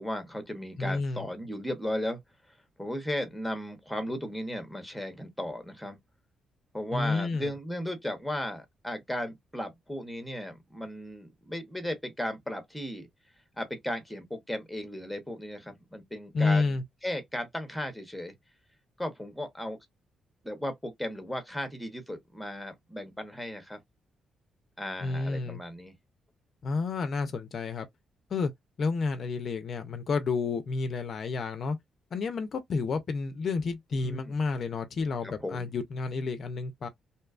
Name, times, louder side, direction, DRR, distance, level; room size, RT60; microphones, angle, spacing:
voice 1, 0.0-2.2 2.8-6.0 6.7-13.1 13.6-18.3 19.0-19.8 20.4-23.8 24.8-25.9 34.0-34.4 35.2-35.7, left 1 dB, ahead, 0.7 m, -36 dB
voice 2, 0.8-1.3 6.9-7.5 16.3-16.8 25.0-25.6 26.6-27.9 28.3-28.5 28.8-31.8 32.1-36.9, left 4 dB, 45° left, 0.4 m, -30 dB
2.6 x 2.2 x 2.3 m
cardioid pair, 130°, 0 cm